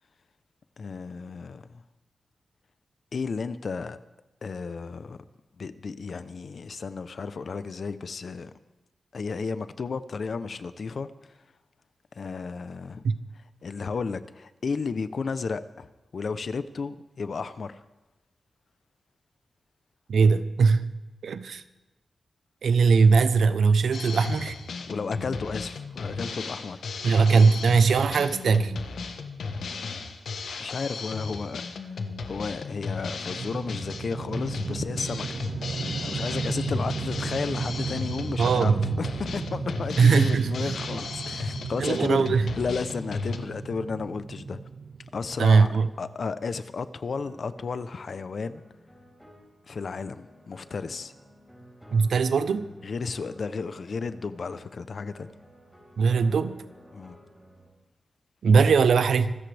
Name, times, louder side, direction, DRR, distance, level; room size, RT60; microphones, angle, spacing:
voice 1, 0.8-1.8 3.1-4.0 4.4-5.2 5.6-8.5 9.1-11.1 12.1-13.0 13.6-17.8 24.9-26.8 30.6-31.9 32.2-35.5 36.0-44.6 45.1-45.7 46.0-48.6 49.7-51.1 52.8-55.3 56.9-57.2, left 4 dB, 55° left, 12 dB, 0.8 m, -33 dB
voice 2, 20.1-20.9 21.2-21.6 22.6-24.6 27.0-28.7 38.4-39.0 40.0-40.8 41.8-42.4 45.4-45.9 51.9-52.7 56.0-56.6 58.4-59.3, right 5 dB, 85° right, 12 dB, 0.8 m, -20 dB
Drum kit, 23.9-43.4, left 4 dB, 90° left, 1.3 m, -35 dB
sound 1, 33.3-45.5, right 5 dB, 55° right, 0.4 m, -35 dB
sound 2, 47.2-57.7, equal, ahead, 4.7 m, -53 dB
25.0 x 14.0 x 3.5 m, 1.1 s
wide cardioid pair, 145°, 0 cm